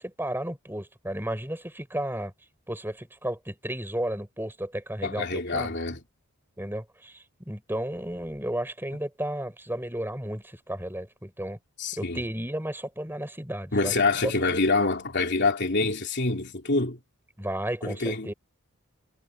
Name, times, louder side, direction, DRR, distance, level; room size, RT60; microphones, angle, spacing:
voice 1, 0.0-2.3 2.7-5.8 6.6-11.6 11.9-14.0 14.2-14.5 17.4-18.3, right 1 dB, 10° right, 6.1 m, -33 dB
voice 2, 5.0-6.0 11.8-12.2 13.7-17.0 17.8-18.3, left 3 dB, 50° left, 3.3 m, -26 dB
head